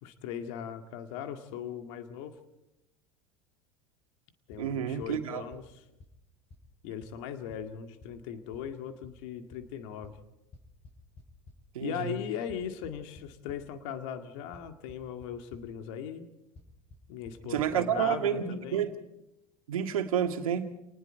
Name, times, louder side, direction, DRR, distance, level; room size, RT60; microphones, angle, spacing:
voice 1, 0.0-2.4 4.5-5.8 6.8-10.2 11.8-16.3 17.1-18.9, left 9 dB, 65° left, 2.1 m, -39 dB
sound 1, 4.5-4.6 5.0-5.1 5.5-5.6 6.0-6.1 6.5-6.6 7.0-7.1 7.5-7.6 8.0-8.1 8.5-8.6 9.0-9.1 9.5-9.6 10.0-10.1 10.5-11.5 12.5-13.6 14.5-14.6 14.9-15.3 15.5-15.6 16.6-16.7 16.9-17.0 17.3-17.4 17.6-17.7, left 3 dB, 35° left, 6.2 m, -50 dB
voice 2, 4.6-5.4 11.7-12.1 17.4-18.9 19.7-20.7, right 9 dB, 80° right, 2.0 m, -30 dB
29.5 x 20.0 x 4.5 m
hypercardioid pair, 80°, 18 cm